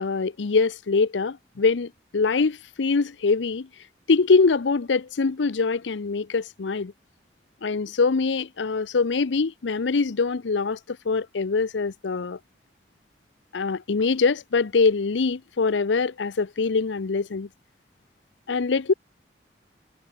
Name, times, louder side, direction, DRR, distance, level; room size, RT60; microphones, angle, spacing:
voice 1, 0.0-3.7 4.1-6.9 7.6-12.4 13.5-17.5 18.5-18.9, left 4 dB, 85° left, 0.6 m, -23 dB
head